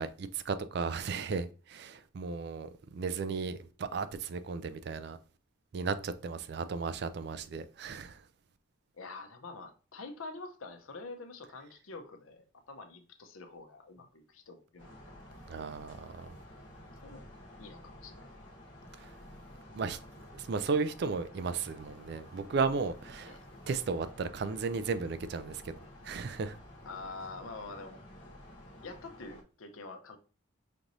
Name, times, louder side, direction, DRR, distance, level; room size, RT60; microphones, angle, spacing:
voice 1, 0.0-5.2 5.7-8.2 15.5-16.3 19.0-19.1 19.7-20.0 20.3-23.4 23.7-25.7 26.0-26.6, right 4 dB, 50° right, 0.3 m, -35 dB
voice 2, 9.0-15.1 17.0-17.2 17.6-18.3 23.3-23.5 26.9-28.0 28.8-30.2, left 3 dB, 85° left, 0.7 m, -46 dB
sound 1, 14.8-29.4, left 1 dB, 60° left, 1.3 m, -52 dB
5.1 x 3.0 x 2.6 m
head